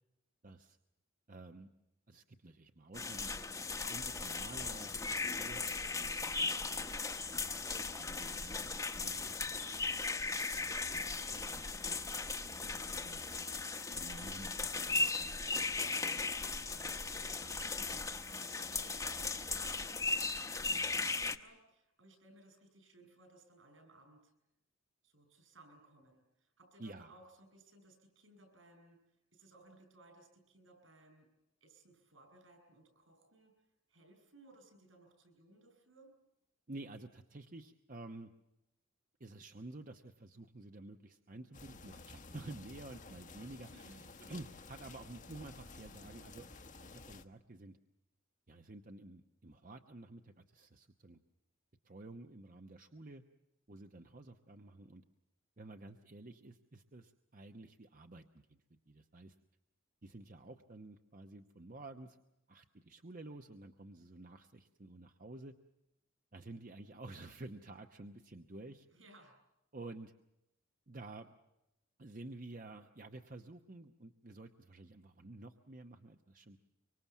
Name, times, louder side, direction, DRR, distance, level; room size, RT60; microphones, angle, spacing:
voice 1, 0.4-0.8 1.3-1.7 2.1-3.5 3.9-5.6 5.9-6.8 7.4-7.6 7.8-10.0 10.9-11.7 12.6-13.3 13.9-15.5 26.8-27.1 36.7-38.3 39.2-46.5 46.8-47.8 48.5-51.2 51.8-53.2 53.7-55.0 55.6-59.3 60.0-62.2 62.5-65.5 66.3-68.9 69.7-70.1 70.9-71.3 72.0-76.6, right 2 dB, 40° right, 6 dB, 1.0 m, -51 dB
sound 1, 2.9-21.4, left 3 dB, 15° left, 1.0 m, -37 dB
voice 2, 16.6-24.3 25.0-29.0 29.3-31.3 31.6-33.5 33.9-36.1 43.6-44.1 68.9-69.3, right 2 dB, 70° right, 5 dB, 7.6 m, -62 dB
sound 2, 41.5-47.2, left 3 dB, 40° left, 1.2 m, -53 dB
25.0 x 25.0 x 7.3 m, 0.89 s
head